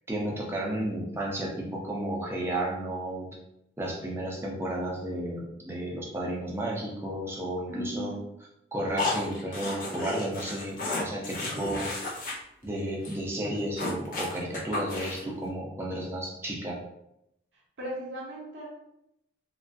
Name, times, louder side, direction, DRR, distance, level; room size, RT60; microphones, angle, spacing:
voice 1, 0.1-3.3 3.8-8.1 8.7-11.9 12.6-16.8, right 1 dB, 15° right, -3 dB, 0.4 m, -33 dB
voice 2, 7.7-8.2 17.8-18.7, equal, 80° right, -3 dB, 0.6 m, -36 dB
sound 1, 9.0-12.3 12.6-12.8 13.0-13.1 13.4-15.3, left 2 dB, 45° left, 0.5 m, -33 dB
2.3 x 2.2 x 2.5 m, 0.82 s
head